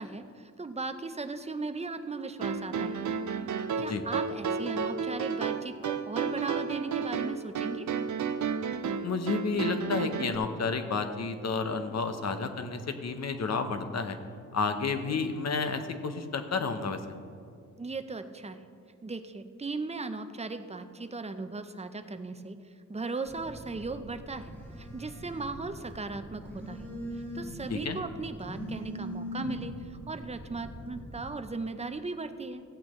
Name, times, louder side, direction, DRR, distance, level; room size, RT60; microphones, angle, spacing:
voice 1, 0.0-3.0 3.8-7.9 17.8-18.6 19.0-22.6 22.9-32.6, right 3 dB, 20° right, 9 dB, 0.5 m, -37 dB
sound 1, 2.4-10.4, right 6 dB, 65° right, 0.6 m, -32 dB
voice 2, 9.0-14.2 14.5-17.2 27.7-28.0, left 4 dB, 55° left, 8 dB, 0.8 m, -31 dB
Telephone, 23.2-31.3, equal, 5° left, 2.0 m, -41 dB
15.0 x 8.4 x 3.1 m, 2.3 s
wide cardioid pair, 95°, 31 cm